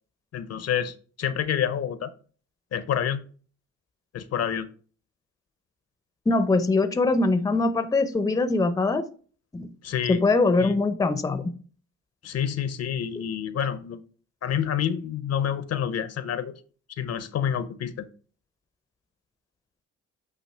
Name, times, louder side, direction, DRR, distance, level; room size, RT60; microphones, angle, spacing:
voice 1, 0.3-2.1 2.7-3.2 4.1-4.7 9.8-10.2 10.6-10.8 12.2-14.0 14.4-16.5 17.0-18.1, left 9 dB, 55° left, 13 dB, 0.6 m, -28 dB
voice 2, 6.3-9.0 9.5-9.7 10.1-11.5, left 3 dB, 10° left, 11 dB, 0.5 m, -22 dB
8.2 x 2.8 x 4.3 m, 0.41 s
cardioid pair, 90°, 30 cm